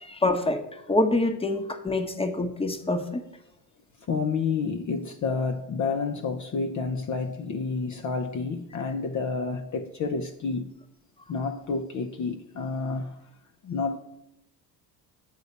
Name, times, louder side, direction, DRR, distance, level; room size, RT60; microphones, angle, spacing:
voice 1, 0.0-3.2, left 2 dB, 10° left, 1.0 m, -26 dB
voice 2, 4.1-10.7 11.3-13.2 13.6-14.0, left 4 dB, 35° left, 0.7 m, -29 dB
8.3 x 4.0 x 6.9 m
hypercardioid pair, 65°, 49 cm